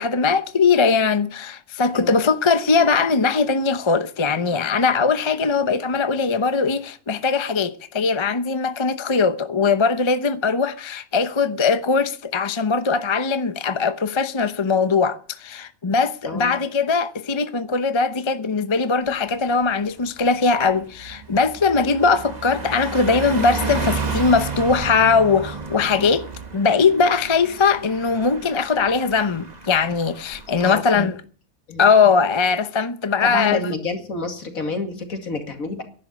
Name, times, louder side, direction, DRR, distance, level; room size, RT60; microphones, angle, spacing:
voice 1, 0.0-26.3 26.5-31.2 31.8-33.6, left 5 dB, 25° left, 0.7 m, -20 dB
voice 2, 16.2-16.5 30.6-31.1 31.7-31.9 33.2-35.8, left 3 dB, 65° left, 2.7 m, -29 dB
Car passing by, 19.1-19.3 19.7-30.7, right 4 dB, 30° right, 1.6 m, -32 dB
11.0 x 9.7 x 9.8 m
omnidirectional pair, 1.6 m